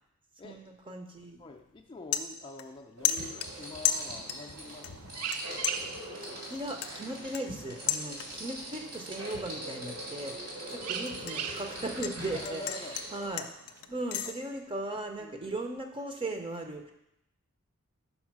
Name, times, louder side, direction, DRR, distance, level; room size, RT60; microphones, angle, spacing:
voice 1, 0.4-1.4 6.5-12.6 13.1-13.5 13.9-16.9, right 2 dB, 25° right, 4 dB, 0.6 m, -37 dB
sound 1, 1.2-1.4 1.8-2.8 3.0-4.5 4.8-5.4 5.6-8.6 8.9-9.3 9.7-12.1 12.4-14.3, left 10 dB, 80° left, 0.4 m, -34 dB
voice 2, 1.4-5.2 8.2-8.5 10.7-10.9 12.3-13.0 14.2-14.3 15.2-15.5, left 2 dB, 20° left, 2 dB, 0.4 m, -46 dB
sound 2, 3.0-13.3, equal, 75° right, 2.6 m, -42 dB
sound 3, 3.4-14.3, right 7 dB, 90° right, 0.5 m, -43 dB
5.4 x 4.8 x 5.9 m, 0.80 s
head